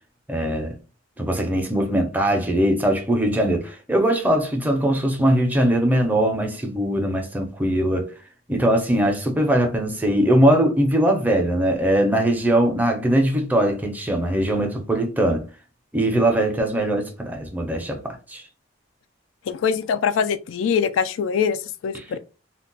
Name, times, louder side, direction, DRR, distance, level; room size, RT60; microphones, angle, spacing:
voice 1, 0.3-0.8 1.2-8.1 8.5-15.4 15.9-18.4 21.9-22.0, right 1 dB, 10° right, 0.5 m, -21 dB
voice 2, 19.5-22.2, left 6 dB, 80° left, 0.3 m, -23 dB
2.2 x 2.1 x 3.8 m
head